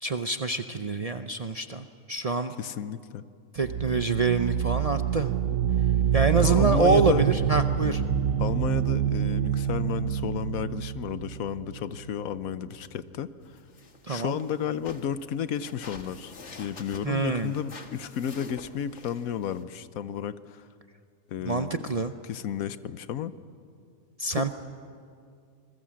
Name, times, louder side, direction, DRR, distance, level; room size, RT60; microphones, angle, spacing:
voice 1, 0.0-2.5 3.5-5.3 6.1-8.0 14.1-14.4 17.0-17.5 21.4-22.1 24.2-24.5, right 4 dB, 45° right, 8 dB, 0.5 m, -26 dB
voice 2, 2.6-3.2 6.4-7.2 8.4-13.3 14.1-20.7 21.3-21.8 22.2-23.3 24.3-24.5, left 9 dB, 90° left, 14 dB, 1.2 m, -32 dB
sound 1, 3.6-12.3, right 9 dB, 65° right, 1.2 m, -26 dB
sound 2, 13.4-19.6, left 4 dB, 55° left, 1.8 m, -48 dB
27.0 x 21.0 x 7.5 m, 2.3 s
omnidirectional pair, 1.4 m